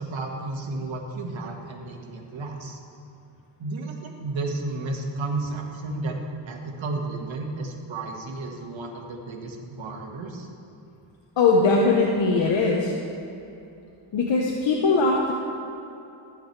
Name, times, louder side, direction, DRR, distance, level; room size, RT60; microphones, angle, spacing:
voice 1, 0.0-2.8 3.6-6.2 6.5-10.5, right 2 dB, 70° right, 2 dB, 1.9 m, -32 dB
voice 2, 11.4-12.9 14.1-15.3, left 3 dB, 65° left, -2 dB, 1.3 m, -20 dB
21.5 x 7.9 x 3.4 m, 2.8 s
cardioid pair, 90°, 49 cm